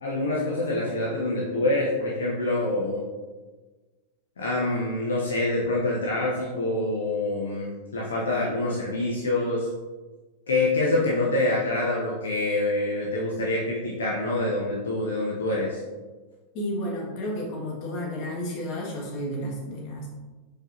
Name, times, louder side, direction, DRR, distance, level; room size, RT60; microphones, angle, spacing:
voice 1, 0.0-3.0 4.4-9.7 10.5-15.8, left 2 dB, 65° left, -3 dB, 0.6 m, -26 dB
voice 2, 16.5-20.1, equal, 40° left, -2 dB, 1.3 m, -32 dB
4.7 x 4.3 x 2.5 m, 1.3 s
figure-of-eight pair, 90°, 0 cm